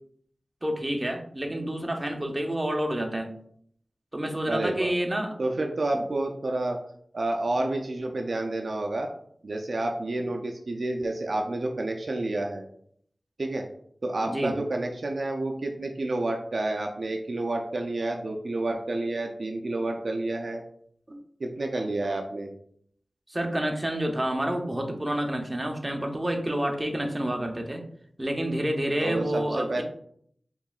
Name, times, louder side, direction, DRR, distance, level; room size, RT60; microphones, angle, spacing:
voice 1, 0.6-3.3 4.1-5.4 5.9-6.0 7.6-7.7 14.2-14.5 21.1-21.2 23.3-27.8 28.2-29.8, right 1 dB, 25° right, 3 dB, 0.7 m, -29 dB
voice 2, 4.5-4.9 5.4-6.8 7.1-9.1 9.4-12.6 13.4-13.7 14.0-20.6 21.4-22.5 29.0-29.8, right 2 dB, 70° right, 2 dB, 0.4 m, -29 dB
4.5 x 3.0 x 2.4 m, 0.64 s
wide cardioid pair, 50°, 0 cm